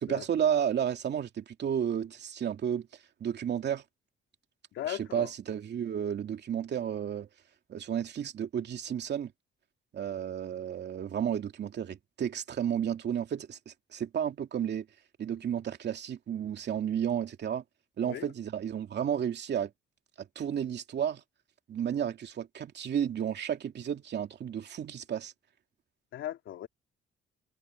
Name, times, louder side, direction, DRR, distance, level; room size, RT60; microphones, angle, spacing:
voice 1, 0.0-2.9 3.2-3.8 4.8-7.3 7.7-9.3 9.9-14.9 15.2-17.6 18.0-19.7 20.2-21.2 21.7-25.3, right 9 dB, 60° right, 2.6 m, -32 dB
voice 2, 4.7-5.3 18.0-18.3 26.1-26.7, left 12 dB, 80° left, 2.8 m, -37 dB
cardioid pair, 90°, 20 cm